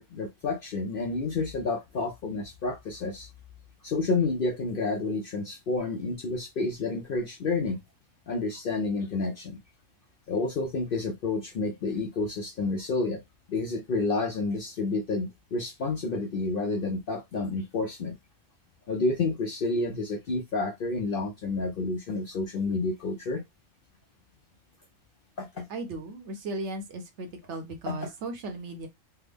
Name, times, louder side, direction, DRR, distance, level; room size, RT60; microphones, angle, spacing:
voice 1, 0.0-3.3 3.8-7.8 8.3-9.6 10.3-13.2 13.5-18.2 18.9-23.4 25.4-25.7 27.9-28.1, left 3 dB, 60° left, 0.6 m, -30 dB
voice 2, 25.7-28.9, right 2 dB, 65° right, 1.0 m, -36 dB
3.3 x 2.0 x 3.4 m
omnidirectional pair, 1.4 m